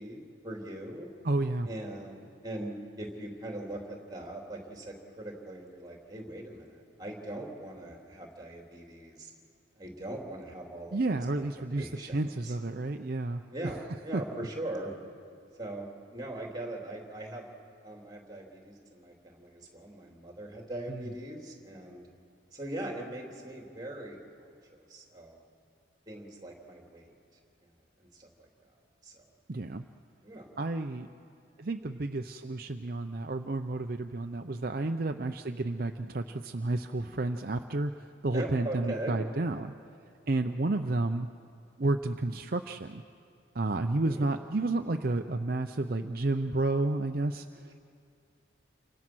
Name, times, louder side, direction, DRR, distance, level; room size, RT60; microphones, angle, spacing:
voice 1, 0.0-1.1 1.7-9.3 9.8-11.0 11.4-11.5 11.8-12.2 12.4-12.5 13.5-14.9 15.6-17.5 17.8-22.0 22.5-25.4 26.1-27.1 28.0-28.5 29.0-29.2 30.2-30.5 38.3-39.2 44.0-44.3, right 1 dB, 20° right, 0 dB, 3.2 m, -41 dB
voice 2, 1.2-1.7 10.9-13.8 14.1-14.2 20.9-21.1 29.5-29.8 30.6-31.1 31.6-39.7 40.3-41.3 41.8-43.0 43.5-47.7, right 2 dB, 50° right, 6 dB, 0.6 m, -31 dB
29.0 x 24.5 x 6.2 m, 2.5 s
head